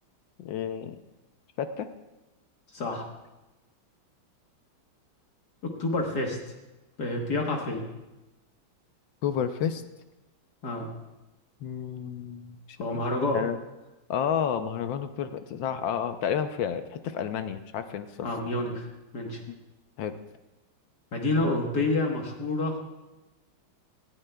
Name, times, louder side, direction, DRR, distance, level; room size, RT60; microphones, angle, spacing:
voice 1, 0.4-1.0 1.6-1.9 9.2-9.8 11.6-12.8 13.3-13.6 14.1-18.3 20.0-20.1, left 8 dB, 70° left, 9 dB, 1.3 m, -30 dB
voice 2, 2.7-3.1 5.6-6.4 7.0-7.8 10.6-10.9 12.8-13.4 18.2-18.9 19.1-19.4 21.1-22.8, left 2 dB, 55° left, 1 dB, 1.8 m, -28 dB
19.0 x 15.0 x 2.3 m, 1.0 s
omnidirectional pair, 2.3 m